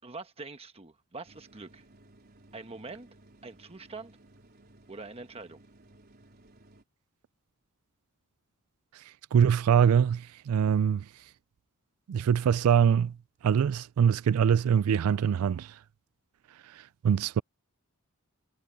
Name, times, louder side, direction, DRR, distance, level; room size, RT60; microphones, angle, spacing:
voice 1, 0.0-1.8 2.5-3.1 3.4-4.2 4.9-5.6, right 3 dB, 30° right, 1.1 m, -44 dB
sound 1, 1.2-6.8, right 1 dB, 45° right, 4.2 m, -58 dB
voice 2, 8.9-11.1 12.1-13.2 13.4-15.8 16.6-17.4, right 8 dB, 75° right, 0.3 m, -24 dB
head